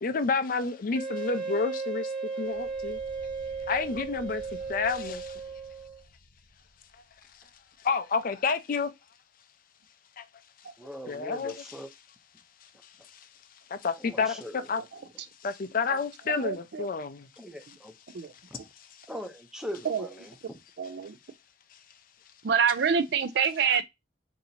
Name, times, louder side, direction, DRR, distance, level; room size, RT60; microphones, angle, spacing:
voice 1, 0.0-3.0 3.7-5.4 7.8-8.9 10.2-10.3 11.1-11.8 13.1-13.3 13.7-14.8 15.4-17.3, left 4 dB, 50° left, 0.4 m, -30 dB
Wind instrument woodwind instrument, 0.9-6.0, right 4 dB, 30° right, 1.1 m, -35 dB
sound 1, 2.4-7.7, left 1 dB, 85° right, 1.1 m, -53 dB
voice 2, 10.8-11.9 14.0-14.6 17.4-17.9 18.5-18.6 19.1-20.6, equal, 5° right, 0.6 m, -40 dB
voice 3, 16.3-16.9 18.1-18.3 19.8-20.1 20.8-21.2 22.4-23.8, right 7 dB, 65° right, 0.4 m, -26 dB
2.8 x 2.7 x 4.1 m
head